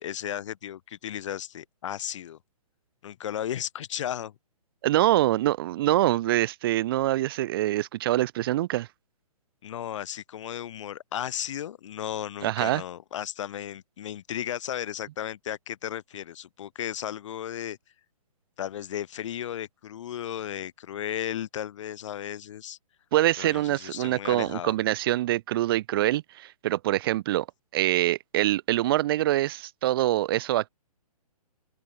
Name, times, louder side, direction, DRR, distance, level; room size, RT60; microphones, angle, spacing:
voice 1, 0.0-2.4 3.0-4.3 9.6-17.8 18.6-22.8 23.4-24.7, left 10 dB, 50° left, 2.5 m, -35 dB
voice 2, 4.8-8.9 12.4-12.8 23.1-27.5 27.7-30.7, right 15 dB, 35° right, 0.8 m, -25 dB
open air
hypercardioid pair, 140°, 20 cm